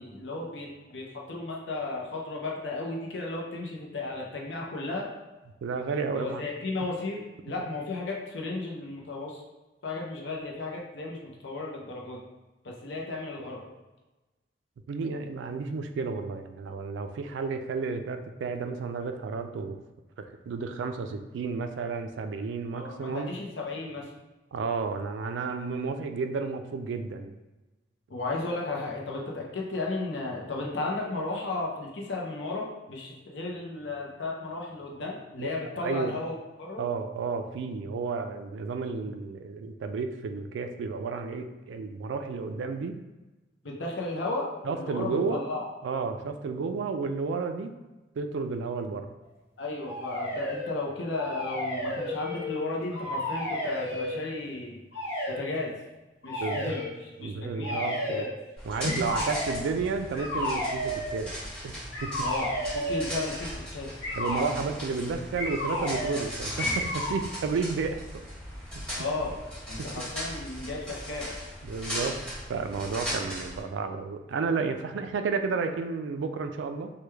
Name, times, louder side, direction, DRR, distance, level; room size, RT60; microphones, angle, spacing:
voice 1, 0.0-5.1 6.1-9.4 9.8-12.2 12.6-13.6 22.7-24.1 28.1-36.8 43.6-45.7 49.6-54.8 55.3-55.7 56.2-58.3 62.2-63.9 69.0-69.3 69.7-71.3, left 2 dB, 70° left, -1 dB, 0.6 m, -34 dB
voice 2, 5.6-6.4 14.9-19.8 20.2-23.3 24.5-27.3 35.4-35.6 35.8-36.1 36.8-43.0 44.6-45.4 45.8-47.7 48.2-49.1 56.4-56.8 57.2-58.3 58.7-61.3 61.6-61.8 62.0-62.3 64.1-68.0 71.6-72.2 72.5-76.9, right 4 dB, 75° right, 7 dB, 0.3 m, -32 dB
sound 1, 49.8-50.7 51.1-52.6 52.9-54.2 54.9-55.4 56.2-56.9 57.6-58.3 58.9-59.6 60.1-61.1 61.9-63.1 64.0-64.5 65.4-66.2 66.6-67.2, left 1 dB, 55° left, 1.3 m, -32 dB
sound 2, 58.6-73.6, equal, 5° left, 1.3 m, -38 dB
3.1 x 2.2 x 3.3 m, 1.1 s
head